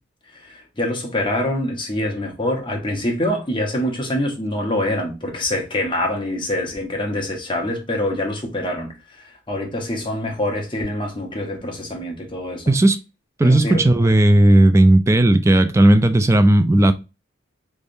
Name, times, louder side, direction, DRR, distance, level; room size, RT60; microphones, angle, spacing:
voice 1, 0.3-12.7 13.4-13.9, left 1 dB, 25° left, 1.0 m, -25 dB
voice 2, 13.4-16.9, right 1 dB, 15° right, 0.3 m, -14 dB
3.5 x 3.2 x 2.6 m
head